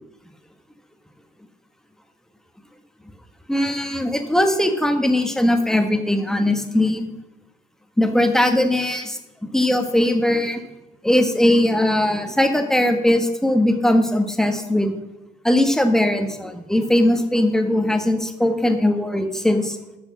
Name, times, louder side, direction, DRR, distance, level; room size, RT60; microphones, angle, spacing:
voice 1, 3.5-7.1 8.0-9.2 9.5-10.6 11.0-14.9 15.4-19.8, left 1 dB, 5° left, 5 dB, 1.5 m, -19 dB
12.5 x 6.6 x 6.2 m, 0.95 s
cardioid pair, 110°, 17 cm